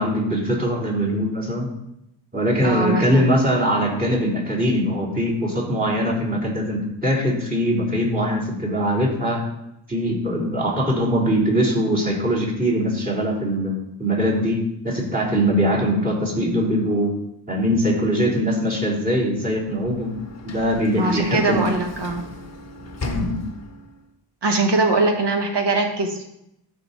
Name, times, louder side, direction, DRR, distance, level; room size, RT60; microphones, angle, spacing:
voice 1, 0.0-1.7 2.3-9.4 9.9-17.1 17.5-20.1 20.4-21.6 23.0-23.4, equal, 20° right, -3 dB, 4.0 m, -22 dB
voice 2, 2.6-3.3 20.9-22.2 24.4-26.2, right 3 dB, 65° right, 3 dB, 1.7 m, -21 dB
Sliding door / Slam, 19.3-24.1, left 2 dB, 35° left, 1.3 m, -36 dB
13.5 x 5.4 x 4.4 m, 0.82 s
cardioid pair, 80°, 45 cm